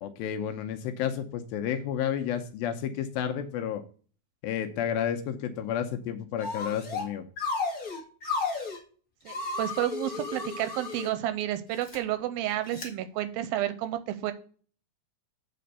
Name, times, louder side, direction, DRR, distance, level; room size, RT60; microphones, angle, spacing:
voice 1, 0.0-3.8 4.4-7.2, left 9 dB, 80° left, 7 dB, 2.3 m, -31 dB
sound 1, 6.4-7.1 7.4-8.8 9.3-11.1 11.7-12.0 12.7-12.9, left 4 dB, 50° left, 1.0 m, -33 dB
voice 2, 9.3-14.3, right 13 dB, 80° right, 11 dB, 2.3 m, -31 dB
7.6 x 4.3 x 6.7 m, 0.42 s
omnidirectional pair, 4.5 m